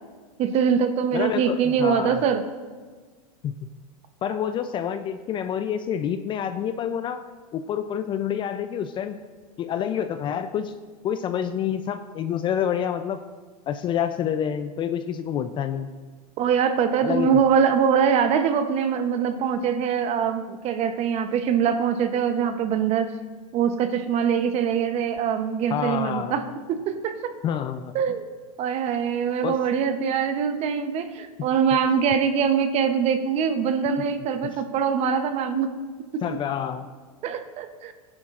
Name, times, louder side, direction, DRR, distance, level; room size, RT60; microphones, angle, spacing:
voice 1, 0.4-2.4 16.4-23.1 23.5-26.4 26.7-27.3 27.9-28.2 28.6-35.7 36.1-36.2 37.2-37.9, right 7 dB, 35° right, 8 dB, 0.9 m, -23 dB
voice 2, 1.1-2.2 3.4-3.5 4.2-7.2 7.5-9.2 9.6-10.7 11.0-13.2 13.7-15.9 17.0-17.3 25.7-26.4 27.4-27.9 29.4-29.6 36.2-36.9, left 9 dB, 25° left, 10 dB, 0.4 m, -27 dB
17.0 x 10.5 x 2.5 m, 1.5 s
hypercardioid pair, 125°, 19 cm